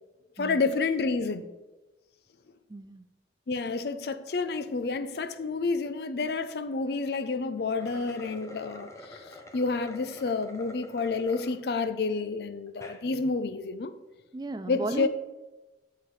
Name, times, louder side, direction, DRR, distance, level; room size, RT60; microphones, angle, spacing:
voice 1, 0.4-1.5 3.5-9.2 9.5-13.9 14.7-15.1, left 4 dB, 65° left, 0.5 m, -29 dB
voice 2, 2.7-3.0 14.3-15.1, right 2 dB, 25° right, 0.4 m, -34 dB
sound 1, 7.6-11.6 12.1-12.2 12.7-13.0, left 1 dB, 15° left, 0.6 m, -47 dB
8.6 x 7.0 x 3.2 m
head